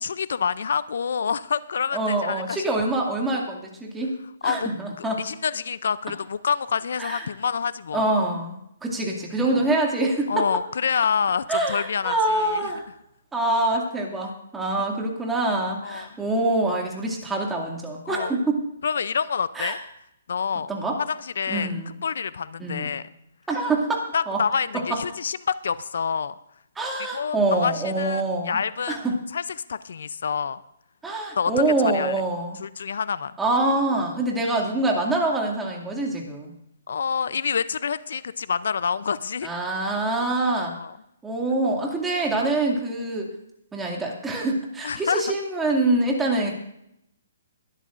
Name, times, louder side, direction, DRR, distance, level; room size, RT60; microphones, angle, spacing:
voice 1, 0.0-2.7 4.4-4.7 5.0-8.1 10.3-12.7 15.8-16.1 18.1-18.3 18.8-19.8 20.3-20.7 21.1-21.7 22.0-23.0 24.1-26.3 27.1-29.0 29.3-29.4 29.7-30.6 31.4-31.5 31.8-32.1 32.6-33.3 36.9-39.5 40.8-40.9 44.8-45.2, left 6 dB, 70° left, 16 dB, 0.5 m, -27 dB
voice 2, 1.9-4.1 4.4-5.3 7.0-7.2 7.9-10.5 11.5-12.8 13.3-18.6 19.5-19.8 20.7-21.0 21.5-21.9 22.6-22.9 23.5-24.4 24.9-25.0 26.8-28.6 28.9-29.1 31.0-32.6 33.4-36.5 39.4-40.7 41.2-43.3 43.7-46.5, right 2 dB, 10° right, -1 dB, 2.3 m, -25 dB
22.0 x 12.0 x 2.5 m, 0.78 s
hypercardioid pair, 150°, 0 cm